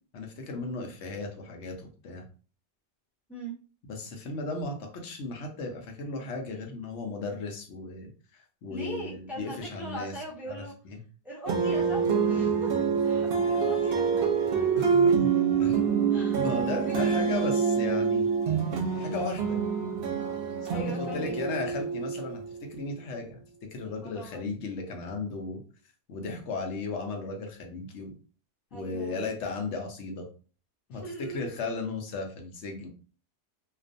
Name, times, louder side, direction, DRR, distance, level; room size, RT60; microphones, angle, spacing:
voice 1, 0.1-2.3 3.9-10.1 10.5-11.0 14.7-15.3 15.6-15.8 16.3-18.3 19.0-19.6 20.6-22.4 22.7-23.4 23.7-25.6 26.1-28.1 28.7-30.3 30.9-32.9, left 3 dB, 80° left, 3 dB, 0.9 m, -35 dB
voice 2, 8.7-10.7 11.2-14.3 14.6-14.9 16.1-16.4 16.7-17.3 20.7-21.3 24.0-24.5 28.7-29.3 30.9-31.5, right 1 dB, ahead, -4 dB, 0.6 m, -40 dB
sound 1, 11.5-22.6, right 6 dB, 60° right, 0.7 m, -26 dB
2.4 x 2.2 x 2.5 m, 0.38 s
omnidirectional pair, 1.2 m